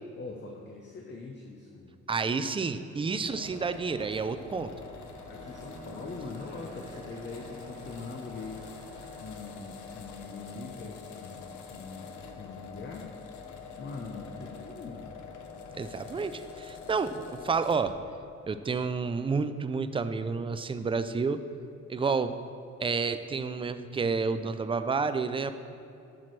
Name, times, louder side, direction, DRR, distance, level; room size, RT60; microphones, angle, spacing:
voice 1, 0.2-2.0 3.1-3.3 5.3-8.6 9.2-13.1 13.8-15.1, left 4 dB, 35° left, 1 dB, 0.8 m, -42 dB
voice 2, 2.1-4.7 15.8-17.9 18.5-21.4 21.9-22.3 22.8-25.5, right 4 dB, 20° right, 10 dB, 0.3 m, -30 dB
Aircraft, 3.2-10.6, right 5 dB, 85° right, 0.9 m, -50 dB
sound 1, 3.3-17.9, left 6 dB, 75° left, 0.9 m, -46 dB
13.5 x 6.0 x 3.2 m, 2.6 s
cardioid pair, 115°, 30 cm